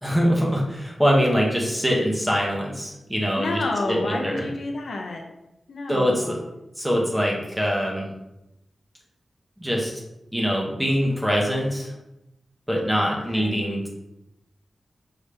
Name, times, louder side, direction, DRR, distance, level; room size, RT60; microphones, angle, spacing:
voice 1, 0.0-3.5 3.9-4.5 5.9-6.4 6.8-8.1 9.6-10.0 10.3-11.9 12.7-13.9, equal, 5° right, -2 dB, 0.8 m, -23 dB
voice 2, 3.4-5.2 5.7-6.4 13.1-13.6, left 2 dB, 65° left, 2 dB, 0.6 m, -30 dB
4.9 x 2.7 x 3.3 m, 0.90 s
wide cardioid pair, 160°, 0 cm